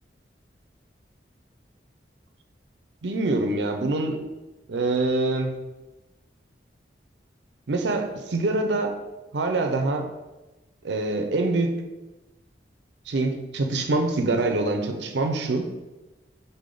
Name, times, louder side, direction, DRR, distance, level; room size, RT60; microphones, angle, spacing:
voice 1, 3.0-4.2 4.7-5.5 7.7-9.0 9.3-10.1 10.8-11.7 13.1-15.7, right 2 dB, 70° right, 5 dB, 0.5 m, -25 dB
4.0 x 3.5 x 3.8 m, 1.1 s
head